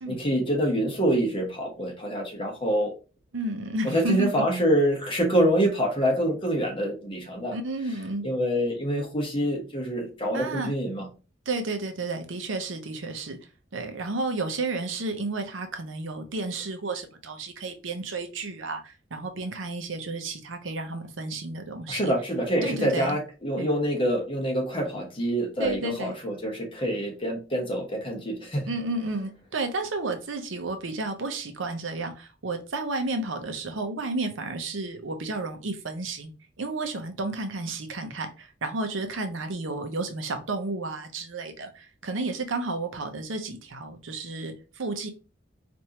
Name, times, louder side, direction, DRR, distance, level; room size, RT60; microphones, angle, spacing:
voice 1, 0.1-2.9 3.8-7.5 8.2-11.1 21.9-28.7, equal, 30° left, 1.1 m, -26 dB
voice 2, 3.3-4.4 7.5-8.3 10.3-10.7 11.5-13.4 13.7-22.1 22.6-23.2 23.6-23.7 25.6-26.2 28.7-36.3 36.6-45.1, right 2 dB, 85° right, 0.7 m, -32 dB
4.4 x 2.6 x 2.9 m
head